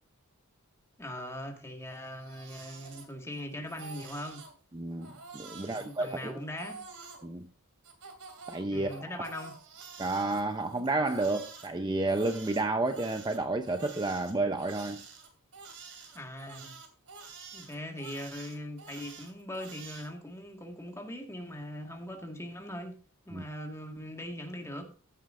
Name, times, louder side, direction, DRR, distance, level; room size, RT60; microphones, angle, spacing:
voice 1, 1.0-4.4 5.6-6.8 8.7-9.5 16.1-16.8 17.5-23.0 23.3-24.9, left 1 dB, 15° left, 1.8 m, -40 dB
Crying sobbing, 1.9-3.4 3.7-4.5 5.0-7.2 7.8-11.7 12.1-20.1, right 4 dB, 85° right, 2.9 m, -48 dB
voice 2, 4.7-6.4 7.2-7.5 8.5-9.2 10.0-15.0 23.3-23.4, right 2 dB, 20° right, 0.7 m, -31 dB
15.0 x 9.3 x 2.6 m
head